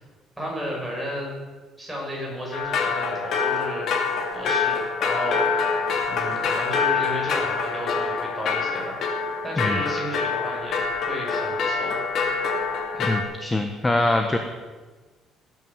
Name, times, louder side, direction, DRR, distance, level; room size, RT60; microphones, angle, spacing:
voice 1, 0.4-1.4 1.8-3.9 4.3-5.8 6.1-9.0 9.4-12.0, equal, 5° right, -3 dB, 6.1 m, -32 dB
sound 1, 2.5-13.2, left 5 dB, 55° left, 2.4 m, -26 dB
voice 2, 12.9-14.4, left 2 dB, 15° left, 5 dB, 1.2 m, -23 dB
18.0 x 9.5 x 7.3 m, 1.3 s
cardioid pair, 140°, 0 cm